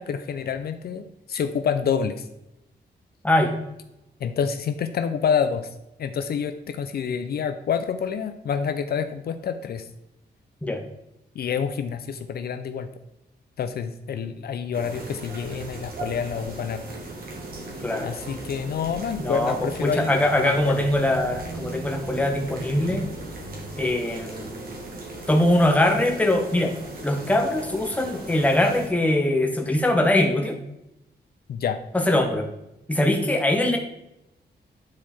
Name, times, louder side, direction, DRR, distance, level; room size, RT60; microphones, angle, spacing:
voice 1, 0.0-2.3 4.2-5.7 6.0-9.9 11.4-12.9 13.6-16.8 18.0-20.8 31.5-31.8, left 7 dB, 65° left, 9 dB, 0.5 m, -28 dB
sound 1, 14.7-28.9, right 2 dB, 60° right, 1.9 m, -37 dB
voice 2, 19.2-23.1 23.8-24.5 25.3-26.7 27.0-30.6 31.9-32.5 32.9-33.8, left 1 dB, 10° left, 2 dB, 1.1 m, -22 dB
9.4 x 4.7 x 4.3 m, 0.87 s
wide cardioid pair, 180°, 18 cm